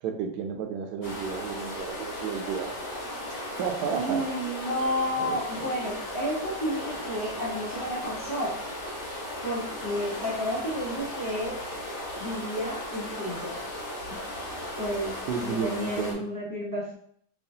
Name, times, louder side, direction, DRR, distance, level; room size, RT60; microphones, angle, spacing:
voice 1, 0.0-2.8 3.6-4.2 5.2-5.7 15.3-16.2, right 6 dB, 70° right, 4 dB, 1.0 m, -32 dB
sound 1, 1.0-16.1, left 1 dB, 50° left, 1.3 m, -36 dB
voice 2, 3.9-8.5 9.4-11.6 12.2-13.6 14.8-15.1 15.4-16.9, equal, 20° left, -5 dB, 0.5 m, -31 dB
5.5 x 2.3 x 2.7 m, 0.63 s
omnidirectional pair, 2.0 m